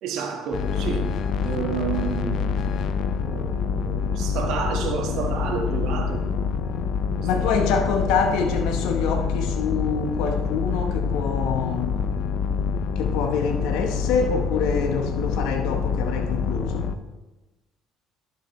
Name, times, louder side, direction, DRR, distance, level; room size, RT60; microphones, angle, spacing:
voice 1, 0.0-2.5 3.2-6.3 7.2-8.0, right 6 dB, 70° right, 2 dB, 1.5 m, -30 dB
sound 1, 0.5-17.0, left 6 dB, 60° left, 0.5 m, -26 dB
voice 2, 7.2-11.9 13.0-16.9, left 5 dB, 85° left, 4 dB, 1.1 m, -26 dB
11.0 x 7.5 x 3.2 m, 1.1 s
supercardioid pair, 90°, 0 cm